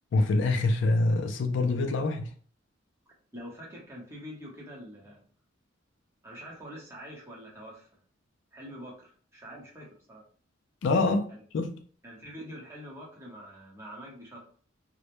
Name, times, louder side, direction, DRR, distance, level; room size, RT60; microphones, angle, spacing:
voice 1, 0.1-2.3 10.8-11.3 11.5-11.7, left 2 dB, 65° left, 0.3 m, -25 dB
voice 2, 3.3-5.2 6.2-7.9 8.5-10.2 11.3-11.4 12.0-14.4, equal, 15° right, 0.8 m, -45 dB
2.1 x 2.1 x 2.9 m
head